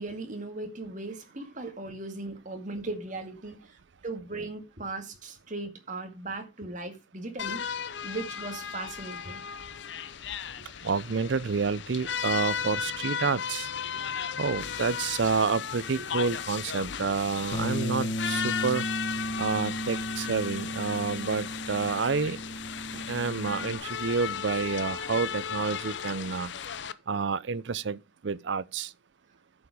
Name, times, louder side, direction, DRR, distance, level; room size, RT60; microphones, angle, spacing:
voice 1, 0.0-7.6 8.0-9.4 16.0-16.1 22.9-23.1, right 2 dB, 40° right, 2.1 m, -38 dB
sound 1, 7.4-26.9, left 7 dB, 65° left, 0.7 m, -35 dB
voice 2, 10.8-13.7 14.4-18.9 19.4-22.4 23.1-26.5 27.1-28.9, right 5 dB, 65° right, 0.5 m, -29 dB
Bass guitar, 17.5-23.8, equal, 30° left, 1.5 m, -35 dB
11.0 x 7.1 x 4.9 m
head